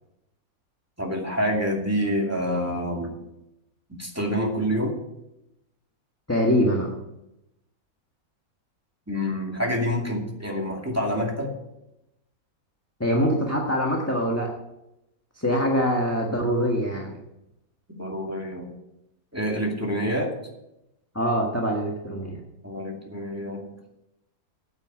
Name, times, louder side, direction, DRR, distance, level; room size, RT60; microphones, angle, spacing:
voice 1, 1.0-3.2 3.9-5.0 9.1-11.5 17.9-18.7 19.3-20.3 22.6-23.7, equal, 10° right, -1 dB, 2.4 m, -27 dB
voice 2, 6.3-6.9 13.0-14.5 15.4-17.2 21.1-22.4, equal, 10° left, -1 dB, 1.5 m, -24 dB
9.4 x 9.0 x 7.5 m, 0.87 s
omnidirectional pair, 1.5 m